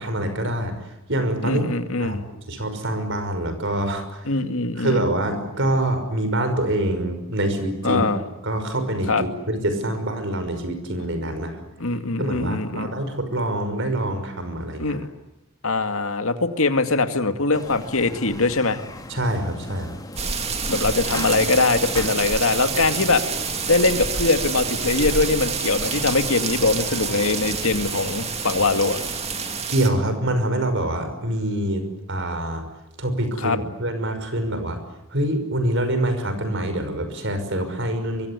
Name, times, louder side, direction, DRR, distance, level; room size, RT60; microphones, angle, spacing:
voice 1, 0.0-1.7 2.0-4.3 4.8-8.0 8.4-11.6 12.2-15.0 19.1-19.9 29.7-32.6 33.0-34.8 35.1-38.3, right 1 dB, 55° right, 8 dB, 5.7 m, -25 dB
voice 2, 1.4-2.2 4.3-5.0 7.8-8.2 9.1-9.2 11.8-12.9 14.8-15.1 15.6-18.8 20.7-23.2 23.7-29.0 33.4-33.6, left 3 dB, 70° left, 8 dB, 2.2 m, -22 dB
sound 1, 17.5-29.6, left 1 dB, 15° left, 2.9 m, -38 dB
sound 2, 20.2-29.9, right 5 dB, 30° right, 2.4 m, -28 dB
24.0 x 24.0 x 9.7 m, 0.94 s
head